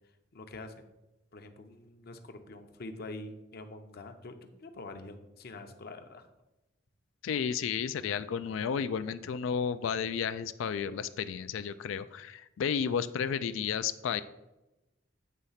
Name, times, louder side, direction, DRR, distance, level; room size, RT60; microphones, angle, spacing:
voice 1, 0.3-0.9 1.3-6.3, left 2 dB, 55° left, 7 dB, 0.7 m, -45 dB
voice 2, 7.2-14.2, left 7 dB, 85° left, 13 dB, 0.3 m, -32 dB
8.3 x 3.3 x 5.6 m, 0.98 s
head